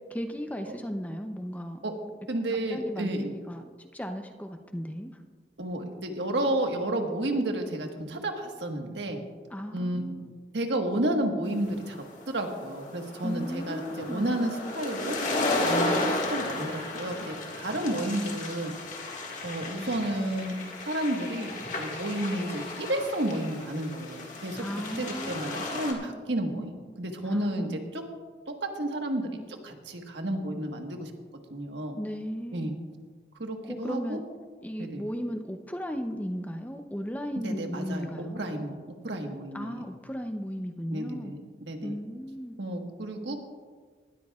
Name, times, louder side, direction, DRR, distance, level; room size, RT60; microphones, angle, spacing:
voice 1, 0.1-1.8 2.7-5.1 9.5-10.3 13.2-14.2 24.6-25.8 27.2-27.8 32.0-32.7 33.6-34.2 34.6-38.4 39.5-41.4 41.8-42.6, equal, 10° left, 6 dB, 0.6 m, -36 dB
voice 2, 2.3-3.3 5.6-9.2 9.7-10.0 10.5-15.2 15.6-18.7 19.4-20.5 20.8-24.6 25.0-28.0 28.5-31.1 31.5-32.0 32.5-32.7 33.4-34.2 34.8-35.0 37.3-38.7 39.0-39.9 40.9-41.4 41.7-42.0 42.6-43.3, right 1 dB, 90° right, 4 dB, 1.4 m, -31 dB
sound 1, 11.7-25.9, left 2 dB, 45° left, 1.8 m, -34 dB
19.5 x 13.0 x 2.4 m, 1.5 s
head